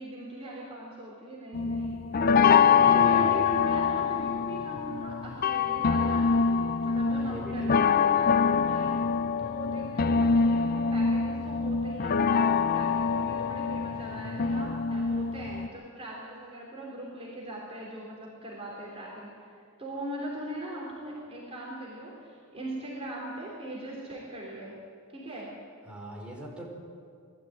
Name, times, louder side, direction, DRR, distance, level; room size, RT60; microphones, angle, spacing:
voice 1, 0.0-2.2 2.7-6.6 6.8-9.0 9.4-24.8 25.1-25.6, right 1 dB, 25° right, -4 dB, 3.6 m, -40 dB
sound 1, 1.5-15.7, left 6 dB, 45° left, 0.5 m, -25 dB
voice 2, 2.5-3.4 6.9-7.9 25.9-26.7, equal, 5° right, -3 dB, 4.8 m, -40 dB
21.0 x 13.5 x 9.4 m, 2.3 s
head